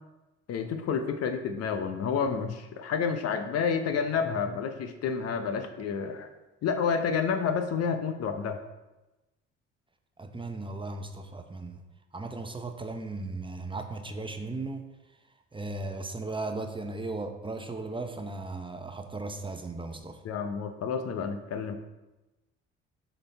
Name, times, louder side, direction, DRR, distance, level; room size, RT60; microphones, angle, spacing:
voice 1, 0.5-6.3 6.6-8.6 20.2-21.7, left 6 dB, 60° left, 7 dB, 0.8 m, -29 dB
voice 2, 10.2-11.8 12.1-14.9 15.5-20.2, right 3 dB, 15° right, 6 dB, 0.7 m, -36 dB
6.3 x 4.0 x 4.5 m, 1.0 s
hypercardioid pair, 65°, 29 cm